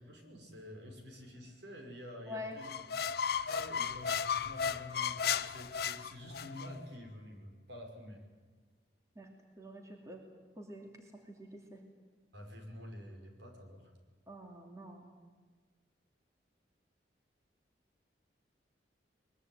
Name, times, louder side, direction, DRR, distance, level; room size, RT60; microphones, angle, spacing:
voice 1, 0.0-2.7 3.3-8.2 12.3-13.9, left 1 dB, 70° right, 3 dB, 5.5 m, -49 dB
voice 2, 2.3-2.6 3.8-3.9 9.2-10.2 10.6-11.8 14.3-15.1, left 1 dB, 15° right, 2 dB, 2.7 m, -47 dB
sound 1, 2.6-6.7, left 7 dB, 55° left, 0.7 m, -35 dB
22.5 x 22.0 x 9.3 m, 1.4 s
head